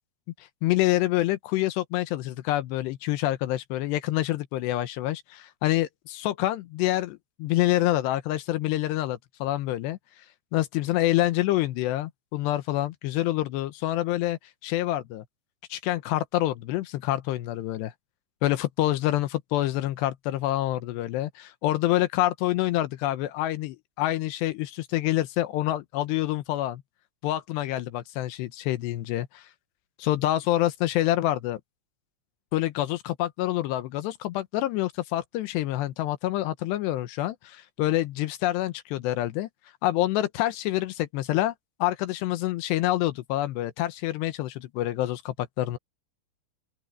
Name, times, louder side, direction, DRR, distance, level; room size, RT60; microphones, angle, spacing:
voice 1, 0.6-10.0 10.5-15.2 15.7-17.9 18.4-26.8 27.2-29.5 30.0-31.6 32.5-39.5 39.8-41.5 41.8-45.8, left 15 dB, 80° left, 3.0 m, -27 dB
open air
omnidirectional pair, 4.9 m